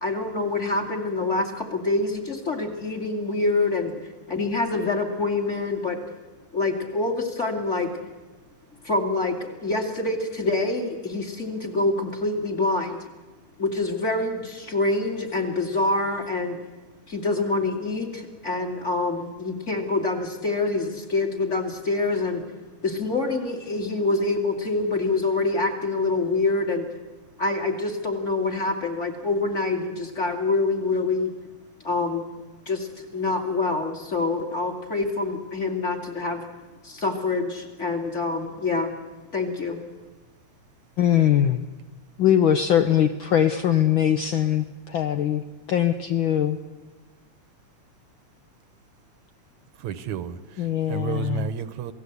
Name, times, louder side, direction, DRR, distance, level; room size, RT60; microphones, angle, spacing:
voice 1, 0.0-6.0 6.5-7.9 8.8-13.0 13.6-16.6 17.1-22.4 22.8-26.9 27.4-31.3 31.8-32.3 32.7-36.4 36.8-38.9 39.3-39.8, left 3 dB, 25° left, 3 dB, 2.6 m, -26 dB
voice 2, 41.0-41.6 42.2-45.4 45.7-46.6 50.6-51.5, left 10 dB, 85° left, 8 dB, 1.1 m, -21 dB
voice 3, 49.8-51.9, right 7 dB, 75° right, 13 dB, 2.2 m, -32 dB
27.5 x 17.5 x 8.2 m, 1.2 s
omnidirectional pair, 3.4 m